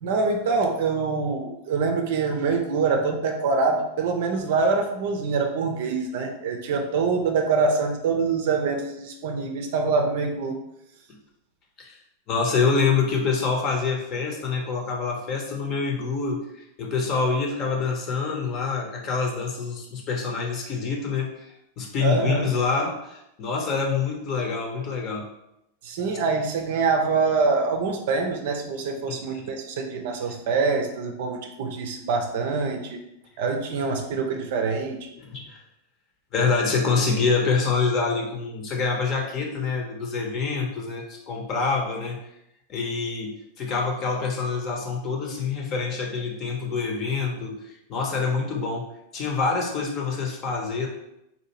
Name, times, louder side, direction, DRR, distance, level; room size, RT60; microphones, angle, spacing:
voice 1, 0.0-10.6 22.0-22.5 25.8-33.0 33.4-35.1, right 4 dB, 55° right, 4 dB, 0.5 m, -25 dB
voice 2, 12.3-25.3 29.1-29.5 35.2-35.6 36.3-42.2 42.7-47.5 47.9-48.9 49.1-50.9, left 4 dB, 35° left, 1 dB, 0.8 m, -26 dB
4.2 x 2.7 x 2.9 m, 0.83 s
figure-of-eight pair, 90°, 0 cm